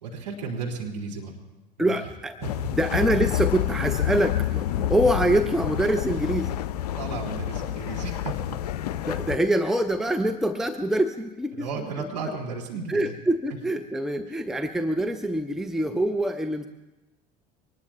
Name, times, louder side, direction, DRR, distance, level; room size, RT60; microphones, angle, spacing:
voice 1, 0.0-1.4 1.8-2.0 2.4-2.5 7.0-8.6 11.5-13.2 14.3-14.4, right 4 dB, 80° right, -2 dB, 2.7 m, -34 dB
voice 2, 1.8-2.3 2.7-6.5 9.1-11.7 12.9-16.7, right 1 dB, ahead, 7 dB, 0.7 m, -25 dB
sound 1, 2.4-9.4, left 11 dB, 70° left, 0.5 m, -28 dB
24.0 x 20.0 x 2.4 m, 1.1 s
figure-of-eight pair, 65°, 21 cm